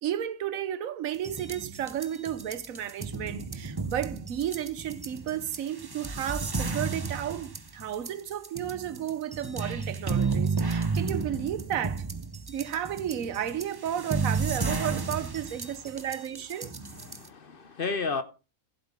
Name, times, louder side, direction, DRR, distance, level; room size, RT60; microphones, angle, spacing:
voice 1, 0.0-12.1 12.5-16.7, right 10 dB, 75° right, 1.2 m, -33 dB
sound 1, 1.1-17.3, right 4 dB, 25° right, 0.6 m, -33 dB
voice 2, 17.0-18.2, left 4 dB, 50° left, 0.8 m, -32 dB
16.0 x 7.8 x 3.6 m
omnidirectional pair, 1.4 m